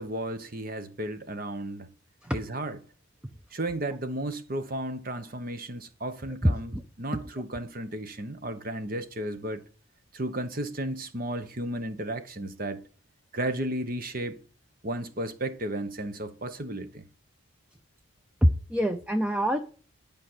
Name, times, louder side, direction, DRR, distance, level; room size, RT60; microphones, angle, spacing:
voice 1, 0.0-1.9 2.3-2.8 3.5-9.6 10.1-12.8 13.3-14.4 14.8-17.0, right 1 dB, 45° right, 1.1 m, -34 dB
voice 2, 6.4-6.8 18.4-19.6, equal, 5° right, 0.6 m, -25 dB
11.5 x 5.2 x 7.9 m
head